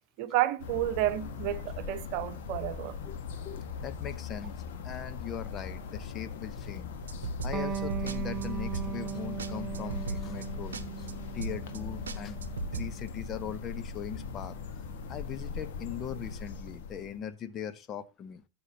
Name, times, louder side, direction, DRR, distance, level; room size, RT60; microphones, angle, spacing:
voice 1, 0.2-2.9, right 13 dB, 45° right, 1.0 m, -30 dB
sound 1, 0.6-17.2, left 5 dB, 50° left, 1.6 m, -40 dB
voice 2, 3.0-4.6 4.8-6.9 7.4-11.1 11.3-12.4 12.7-14.6 15.1-18.4, left 9 dB, 30° left, 0.9 m, -40 dB
sound 2, 7.1-8.2 8.4-8.5 8.7-9.1 9.4-9.5 9.7-10.5 10.7-10.8 11.1-11.2 11.4-11.8 12.1-12.9, right 3 dB, 65° right, 0.9 m, -36 dB
Electric guitar, 7.5-14.7, right 11 dB, 25° right, 0.7 m, -39 dB
14.0 x 7.9 x 2.8 m
figure-of-eight pair, 90°, 0 cm